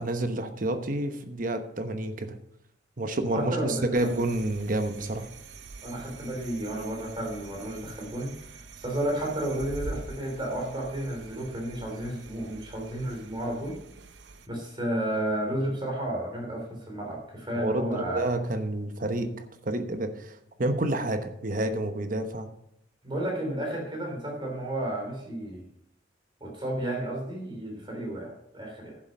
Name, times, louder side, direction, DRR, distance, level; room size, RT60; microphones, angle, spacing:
voice 1, 0.0-2.4 3.0-5.3 17.6-22.5, right 1 dB, 45° right, 8 dB, 1.0 m, -29 dB
voice 2, 3.3-4.1 5.8-13.8 14.5-18.3 23.0-25.7 26.4-29.0, right 1 dB, 25° right, 0 dB, 3.4 m, -32 dB
sound 1, 3.9-14.5, right 3 dB, 65° right, 0.7 m, -45 dB
11.0 x 7.5 x 5.3 m, 0.79 s
head